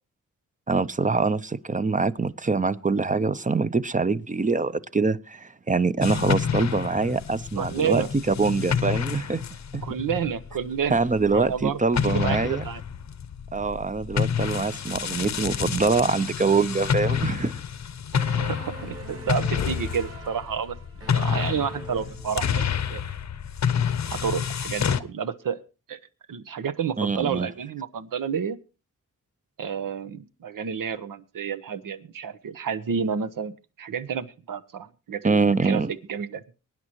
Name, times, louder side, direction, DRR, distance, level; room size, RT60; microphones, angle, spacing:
voice 1, 0.7-9.4 9.7-9.8 10.9-12.7 13.5-17.5 27.0-27.5 35.2-35.9, right 4 dB, 25° right, 0.6 m, -24 dB
sound 1, 6.0-11.6 11.9-25.0, left 7 dB, 55° left, 0.8 m, -29 dB
voice 2, 7.6-8.1 9.8-11.0 11.3-11.8 12.0-12.8 18.4-20.8 21.1-22.6 22.9-23.0 24.1-25.6 25.9-26.0 26.3-28.6 29.6-33.5 33.8-35.4 35.6-35.8 36.1-36.4, right 7 dB, 75° right, 1.0 m, -30 dB
sound 2, 18.1-22.8, right 3 dB, 45° right, 4.4 m, -43 dB
23.0 x 9.8 x 2.9 m
cardioid pair, 75°, 33 cm